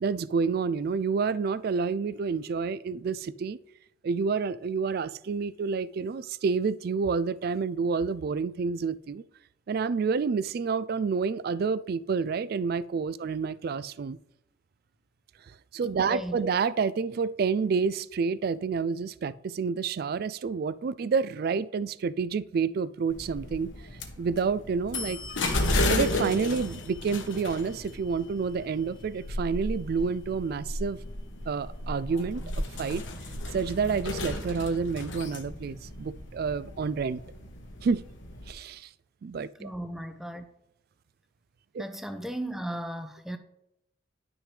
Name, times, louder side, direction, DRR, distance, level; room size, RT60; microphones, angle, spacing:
voice 1, 0.0-3.6 4.0-9.2 9.7-14.2 15.7-23.7 24.2-25.2 25.9-31.0 31.5-33.0 33.5-37.2 37.8-38.0 38.5-38.9 39.2-39.7 41.7-41.8, right 5 dB, 50° right, 0.3 m, -29 dB
voice 2, 16.0-16.5 39.6-40.4 41.8-43.4, right 1 dB, ahead, 0.6 m, -36 dB
sound 1, 23.1-38.5, left 2 dB, 75° left, 1.2 m, -34 dB
11.0 x 6.1 x 3.3 m
head